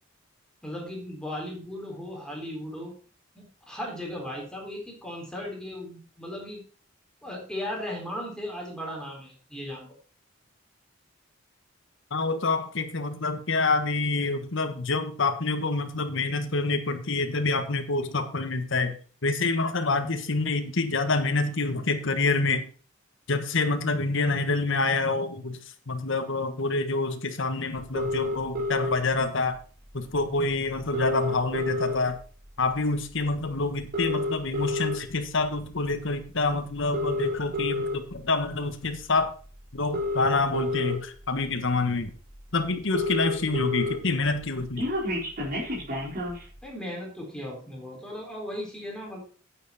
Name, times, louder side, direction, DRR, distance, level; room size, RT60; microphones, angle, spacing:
voice 1, 0.6-2.9 3.3-6.6 7.2-10.0 46.6-49.2, left 1 dB, 5° left, -2 dB, 3.7 m, -36 dB
voice 2, 12.1-19.0 19.2-22.6 23.3-25.6 25.9-29.6 29.9-32.2 32.6-39.3 39.7-42.1 42.5-44.8, left 3 dB, 65° left, 8 dB, 1.4 m, -27 dB
sound 1, 27.9-29.0 30.1-30.2 30.5-30.6 30.8-32.2 32.7-32.9 33.8-34.9 35.6-35.9 36.8-37.9 39.2-39.3 39.8-40.9 41.6-41.7 42.0-42.1 42.3-42.4 42.6-43.9 44.3-46.4, left 2 dB, 50° right, 4.3 m, -29 dB
9.3 x 9.2 x 4.2 m, 0.40 s
head